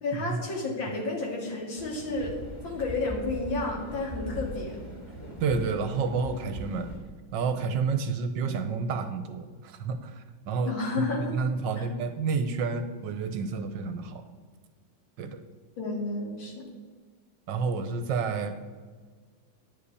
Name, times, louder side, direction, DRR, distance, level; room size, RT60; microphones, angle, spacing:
voice 1, 0.0-2.4 2.6-4.8 10.6-11.4 11.8-11.9 15.8-16.6, left 3 dB, 70° left, -1 dB, 2.7 m, -31 dB
sound 1, 1.7-7.0, equal, 5° left, 2.6 m, -40 dB
voice 2, 5.4-6.9 7.3-11.0 11.3-14.2 15.2-15.4 17.5-18.5, right 5 dB, 70° right, 9 dB, 1.3 m, -30 dB
9.9 x 5.3 x 8.2 m, 1.5 s
omnidirectional pair, 2.2 m